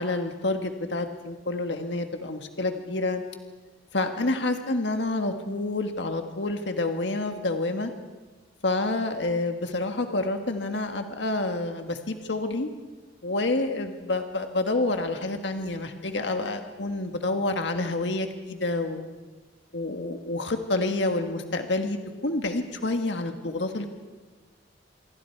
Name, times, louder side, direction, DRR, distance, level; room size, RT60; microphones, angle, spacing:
voice 1, 0.0-3.2 3.9-7.9 8.6-12.7 13.2-19.1 19.7-22.0 22.2-23.9, left 2 dB, 70° left, 6 dB, 1.7 m, -28 dB
27.0 x 23.5 x 4.7 m, 1.3 s
head